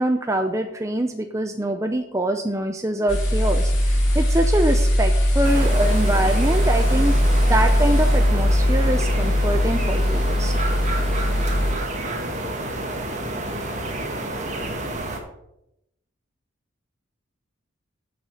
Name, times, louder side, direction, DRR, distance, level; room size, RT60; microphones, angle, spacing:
voice 1, 0.0-7.1 7.5-10.5, right 1 dB, 15° right, 5 dB, 0.6 m, -24 dB
sound 1, 3.1-11.7, equal, 65° left, 3.7 m, -20 dB
sound 2, 5.4-15.2, right 1 dB, 35° right, 1.6 m, -29 dB
8.6 x 6.6 x 7.1 m, 0.82 s
head